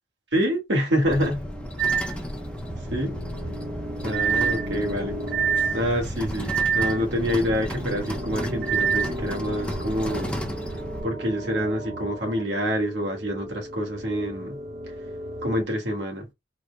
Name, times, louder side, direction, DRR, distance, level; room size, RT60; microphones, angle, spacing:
voice 1, 0.3-1.5 2.9-3.1 4.0-5.2 5.7-10.4 11.0-14.6 15.4-16.3, equal, 70° right, 1.4 m, -26 dB
sound 1, 1.0-11.0, equal, 5° left, 0.6 m, -34 dB
sound 2, 1.2-15.6, equal, 40° right, 0.8 m, -37 dB
sound 3, 1.8-2.1 4.1-4.7 5.3-5.8 6.5-7.0 8.6-9.1, right 7 dB, 85° right, 1.6 m, -24 dB
3.8 x 2.1 x 3.2 m
head